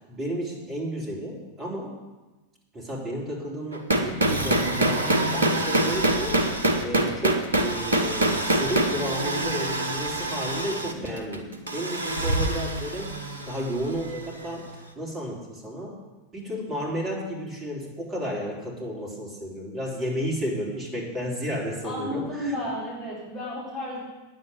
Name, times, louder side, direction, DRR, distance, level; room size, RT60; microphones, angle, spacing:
voice 1, 0.1-1.9 2.7-6.4 6.8-13.2 13.5-16.0 16.3-22.6, equal, 20° right, -4 dB, 3.6 m, -32 dB
sound 1, 3.7-14.5, right 1 dB, 75° right, 1.1 m, -25 dB
voice 2, 21.8-24.0, left 1 dB, 25° left, -7 dB, 4.8 m, -32 dB
9.7 x 7.6 x 8.0 m, 1.2 s
figure-of-eight pair, 90°, 0 cm